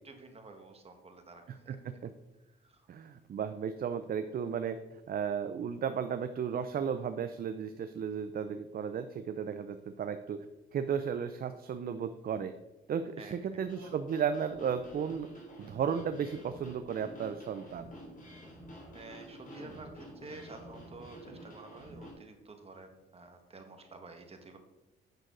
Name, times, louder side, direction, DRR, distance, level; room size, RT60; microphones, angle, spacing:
voice 1, 0.0-1.8 2.6-2.8 13.2-13.3 18.9-24.6, right 3 dB, 30° right, 5 dB, 1.6 m, -50 dB
voice 2, 1.5-2.1 2.9-4.8 5.1-10.5 10.7-12.5 12.9-15.3 15.6-17.9, right 7 dB, 50° right, 10 dB, 0.5 m, -34 dB
sound 1, 13.6-22.1, equal, 40° left, 3.3 m, -49 dB
9.0 x 6.2 x 3.9 m, 0.97 s
cardioid pair, 90°, 20 cm